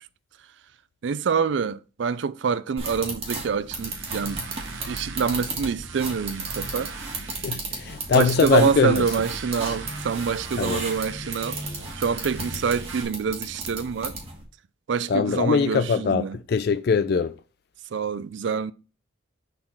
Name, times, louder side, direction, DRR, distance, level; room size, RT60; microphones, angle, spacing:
voice 1, 1.0-4.4 4.9-6.9 8.1-11.6 12.0-14.1 14.9-16.4 17.9-18.7, right 6 dB, 70° right, 0.4 m, -26 dB
sound 1, 2.8-14.4, right 3 dB, 30° right, 1.6 m, -35 dB
sound 2, 3.7-13.0, right 3 dB, 85° right, 1.1 m, -38 dB
voice 2, 7.4-9.0 10.6-10.8 15.1-17.3, left 5 dB, 55° left, 0.3 m, -22 dB
6.6 x 3.8 x 5.8 m
head